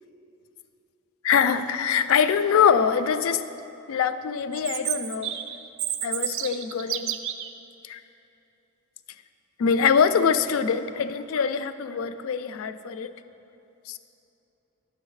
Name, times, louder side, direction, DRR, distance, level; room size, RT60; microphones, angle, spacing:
voice 1, 1.2-3.4 3.9-5.4 6.0-7.2 7.8-8.0 9.6-13.1 13.9-14.0, left 7 dB, 70° left, 12 dB, 0.3 m, -23 dB
Chirp tweet, 4.5-7.5, right 10 dB, 65° right, 0.4 m, -30 dB
10.5 x 6.3 x 3.2 m, 2.9 s
head